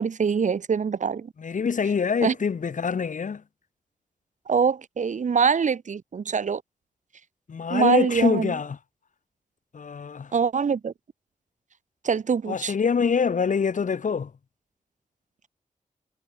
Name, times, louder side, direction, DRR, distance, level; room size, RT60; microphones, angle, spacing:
voice 1, 0.0-1.3 2.2-2.3 4.5-6.6 7.7-8.5 10.3-10.9 12.0-12.7, right 6 dB, 70° right, 1.3 m, -24 dB
voice 2, 1.4-3.4 7.5-8.8 9.7-10.3 12.5-14.3, left 6 dB, 75° left, 4.1 m, -25 dB
cardioid pair, 60°, 13 cm